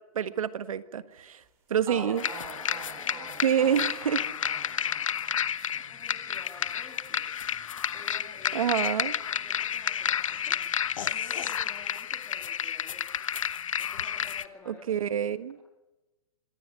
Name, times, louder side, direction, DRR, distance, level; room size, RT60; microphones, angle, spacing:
voice 1, 0.1-1.4 1.7-2.2 3.4-4.2 8.5-9.1 14.7-15.6, right 8 dB, 70° right, 12 dB, 1.6 m, -27 dB
sound 1, 1.5-1.6 1.9-9.7 10.0-11.1, right 4 dB, 15° right, 3.6 m, -47 dB
voice 2, 1.9-3.5 5.9-7.2 7.9-8.8 9.1-13.2 13.8-15.0, left 4 dB, 10° left, 0 dB, 2.2 m, -51 dB
sound 2, 2.2-14.5, left 9 dB, 60° left, 1.1 m, -31 dB
26.0 x 18.5 x 7.6 m, 1.0 s
hypercardioid pair, 180°, 18 cm